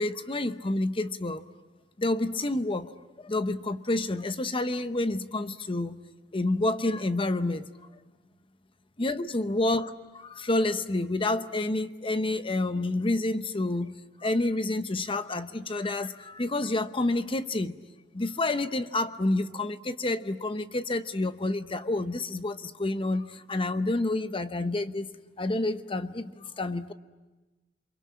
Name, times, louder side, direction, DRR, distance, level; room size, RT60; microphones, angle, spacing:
voice 1, 0.0-1.4 2.0-2.9 3.2-6.0 6.3-7.7 9.0-17.8 18.1-25.1 25.4-26.9, left 2 dB, 30° left, 11 dB, 0.9 m, -29 dB
29.5 x 23.5 x 8.6 m, 1.2 s
head